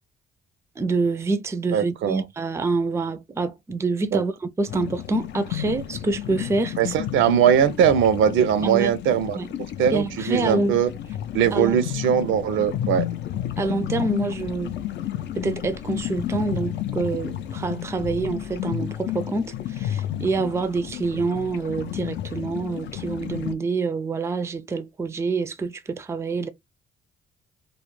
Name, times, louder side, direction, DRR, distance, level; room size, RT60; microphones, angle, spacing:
voice 1, 0.8-6.8 8.6-8.9 9.4-9.5 9.9-10.7 11.5-11.8 13.6-14.8 15.4-26.5, right 3 dB, 15° right, 0.3 m, -26 dB
voice 2, 1.7-2.2 4.1-4.2 6.8-9.4 9.8-10.9 11.3-13.1, right 9 dB, 80° right, 0.4 m, -20 dB
sound 1, 4.7-23.6, left 12 dB, 65° left, 0.4 m, -31 dB
2.3 x 2.1 x 3.0 m
cardioid pair, 90°, 20 cm